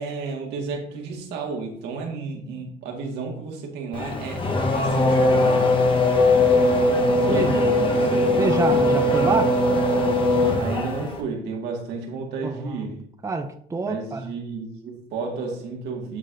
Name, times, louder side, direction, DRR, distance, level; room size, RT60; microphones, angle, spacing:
voice 1, 0.0-5.7 7.2-9.1 10.6-13.1 13.8-16.2, right 4 dB, 85° right, 1.8 m, -32 dB
Race car auto racing / Accelerating revving vroom, 3.9-11.2, left 2 dB, 30° left, 1.1 m, -20 dB
voice 2, 8.4-9.6 12.4-12.7 13.2-14.3, right 3 dB, 20° right, 0.6 m, -26 dB
12.5 x 4.2 x 2.6 m
cardioid pair, 110°, 17 cm